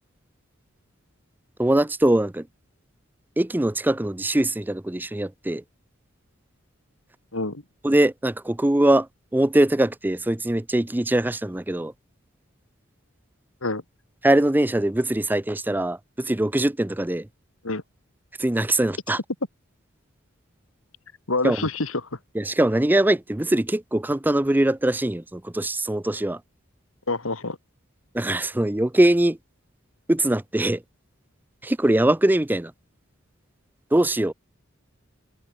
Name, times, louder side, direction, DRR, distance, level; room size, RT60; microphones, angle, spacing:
voice 1, 1.6-2.5 3.4-5.6 7.8-11.9 14.2-17.3 18.4-19.2 21.4-21.7 22.3-26.4 28.1-29.4 30.1-30.8 31.6-32.7 33.9-34.3, right 1 dB, 10° right, 0.5 m, -22 dB
voice 2, 7.3-7.6 13.6-13.8 17.6-17.8 21.3-21.9 27.1-27.6, left 2 dB, 90° left, 2.7 m, -26 dB
head